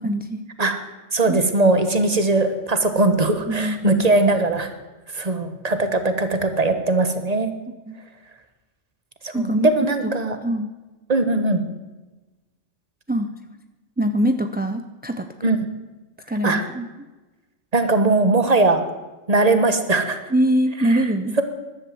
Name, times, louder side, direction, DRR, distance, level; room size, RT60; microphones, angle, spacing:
voice 1, 0.0-0.4 1.3-1.4 3.5-4.1 7.9-8.0 9.3-9.7 10.0-10.1 10.4-10.7 13.1-13.3 14.0-15.3 16.3-16.9 20.3-21.4, right 1 dB, 10° right, 8 dB, 0.4 m, -23 dB
voice 2, 1.1-4.7 5.1-7.5 9.2-10.4 11.1-11.6 15.4-15.6 16.4-16.7 17.7-18.8 19.3-20.2 20.9-21.0, right 2 dB, 30° right, 8 dB, 1.5 m, -20 dB
14.0 x 12.0 x 7.7 m, 1.2 s
omnidirectional pair, 1.3 m